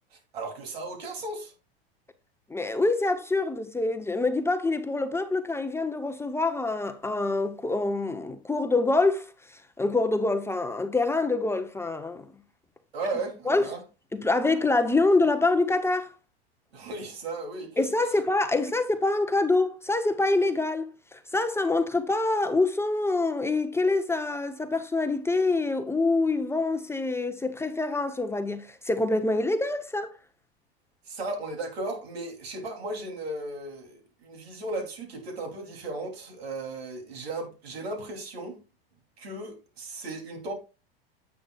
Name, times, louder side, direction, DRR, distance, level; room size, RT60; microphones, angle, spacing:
voice 1, 0.1-1.5 12.9-13.8 16.7-17.8 31.1-38.6 39.2-40.5, right 2 dB, 85° right, 3.1 m, -36 dB
voice 2, 2.5-9.3 9.8-12.3 13.5-13.7 14.1-16.1 17.8-30.1, left 2 dB, 10° left, 0.7 m, -25 dB
9.7 x 8.2 x 2.3 m
hypercardioid pair, 110°, 30 cm